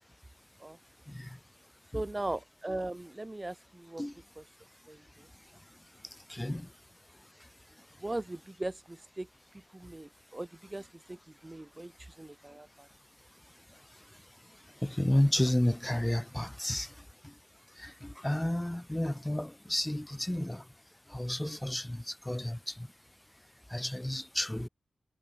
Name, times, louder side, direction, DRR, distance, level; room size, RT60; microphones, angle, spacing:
voice 1, 1.9-4.0 4.9-5.0 8.0-9.3 9.7-11.2 11.4-12.9, right 2 dB, 15° right, 0.6 m, -39 dB
voice 2, 6.3-6.7 14.8-16.9 17.8-20.6 21.1-22.7 23.7-24.7, left 1 dB, 5° left, 5.8 m, -31 dB
wide cardioid pair, 175°, 0 cm